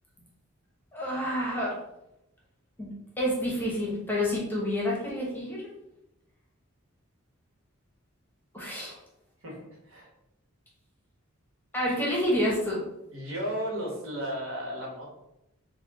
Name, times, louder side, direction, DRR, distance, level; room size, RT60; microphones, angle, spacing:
voice 1, 0.9-1.7 2.8-5.6 8.5-9.0 11.7-12.8, left 1 dB, 10° left, -3 dB, 0.9 m, -29 dB
voice 2, 9.4-10.1 13.1-15.1, equal, 70° right, -3 dB, 1.4 m, -34 dB
4.3 x 2.3 x 3.7 m, 0.86 s
head